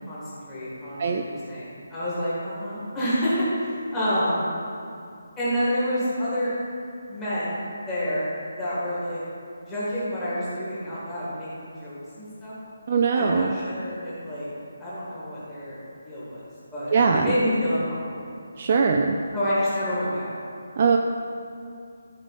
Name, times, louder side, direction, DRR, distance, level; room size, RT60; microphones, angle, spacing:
voice 1, 0.1-4.5 5.4-6.5 7.1-8.3 8.6-9.2 9.7-12.6 13.1-14.5 14.8-15.8 16.0-18.3 19.3-20.3, equal, 10° left, -12 dB, 2.0 m, -28 dB
voice 2, 12.9-13.6 16.9-17.3 18.6-19.2 20.8-21.0, right 5 dB, 25° right, 2 dB, 0.3 m, -21 dB
13.5 x 5.1 x 4.2 m, 2.5 s
hypercardioid pair, 180°, 0 cm